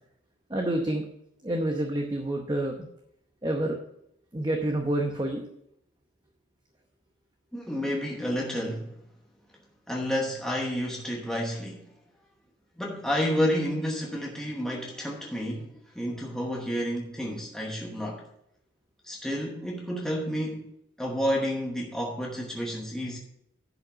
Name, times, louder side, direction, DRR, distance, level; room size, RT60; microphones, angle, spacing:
voice 1, 0.5-1.0 1.4-2.9 3.4-3.8 4.3-5.5, right 1 dB, 20° right, 0.8 m, -28 dB
voice 2, 7.5-9.0 9.9-11.8 12.8-18.2 19.0-20.7 21.0-23.2, equal, 5° left, 1.0 m, -30 dB
10.5 x 5.4 x 5.6 m
head